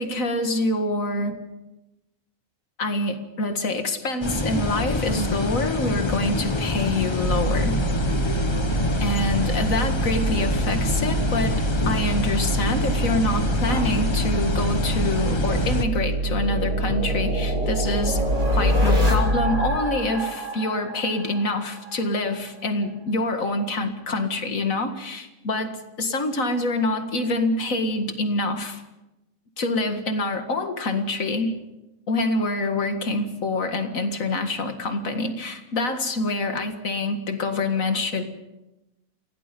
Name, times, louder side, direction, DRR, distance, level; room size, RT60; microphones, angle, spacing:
voice 1, 0.0-1.4 2.8-7.8 9.0-18.2 18.5-28.8 29.6-31.5 32.1-38.2, left 2 dB, 70° left, 6 dB, 2.3 m, -26 dB
sound 1, 4.2-15.8, left 2 dB, 20° left, 1.0 m, -26 dB
sound 2, 7.2-19.8, right 3 dB, 60° right, 2.3 m, -26 dB
sound 3, 15.4-22.0, left 1 dB, 35° right, 3.9 m, -26 dB
29.5 x 16.5 x 5.3 m, 0.97 s
omnidirectional pair, 1.4 m